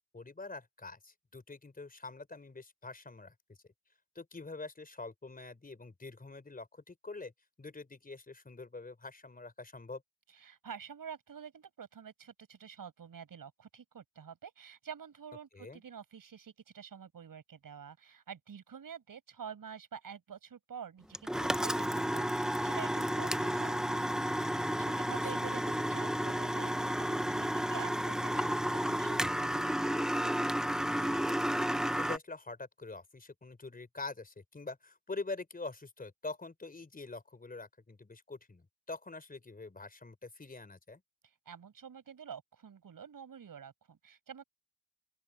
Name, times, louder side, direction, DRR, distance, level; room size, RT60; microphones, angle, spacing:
voice 1, 0.1-3.6 4.1-7.3 7.6-10.0 15.5-15.8 25.1-25.6 30.9-41.0, left 3 dB, 20° left, 4.4 m, -45 dB
voice 2, 10.3-30.0 41.5-44.4, right 7 dB, 50° right, 7.3 m, -48 dB
sound 1, 21.1-32.2, equal, ahead, 0.7 m, -32 dB
open air
cardioid pair, 95°, 42 cm